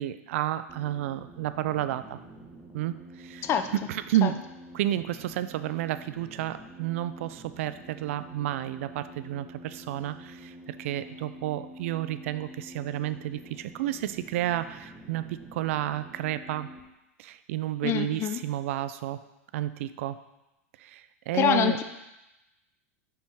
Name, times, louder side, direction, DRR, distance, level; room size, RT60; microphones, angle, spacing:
voice 1, 0.0-2.2 2.7-4.4 4.7-16.7 17.2-19.2 19.5-20.2 20.8-21.8, right 13 dB, 65° right, 13 dB, 0.4 m, -31 dB
sound 1, 0.7-16.8, right 1 dB, 15° right, 1.1 m, -48 dB
voice 2, 17.8-18.4 21.3-21.8, left 9 dB, 30° left, 9 dB, 0.4 m, -25 dB
5.2 x 4.7 x 4.4 m, 0.97 s
hypercardioid pair, 105°, 8 cm